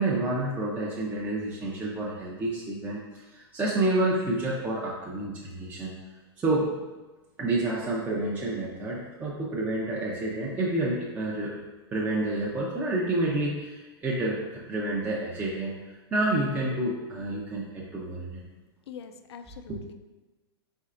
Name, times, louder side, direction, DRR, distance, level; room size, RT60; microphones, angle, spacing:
voice 1, 0.0-3.0 3.3-5.9 6.4-6.7 7.4-11.5 11.9-14.4 14.7-15.7 16.1-18.4 19.7-19.8, right 2 dB, 10° right, -5 dB, 0.5 m, -29 dB
voice 2, 18.9-19.9, left 7 dB, 90° left, 8 dB, 0.4 m, -44 dB
4.3 x 4.0 x 2.4 m, 1.2 s
hypercardioid pair, 145°, 13 cm